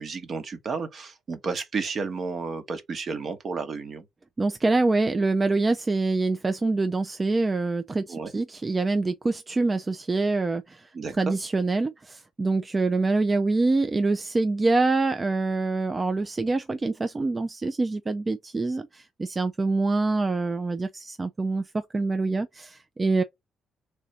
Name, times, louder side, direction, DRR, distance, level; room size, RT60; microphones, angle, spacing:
voice 1, 0.0-4.0 8.1-8.3 10.9-11.4, right 4 dB, 50° right, 1.0 m, -32 dB
voice 2, 4.4-10.9 11.2-23.2, right 3 dB, 25° right, 0.4 m, -25 dB
3.3 x 2.6 x 4.0 m
cardioid pair, 90°, 0 cm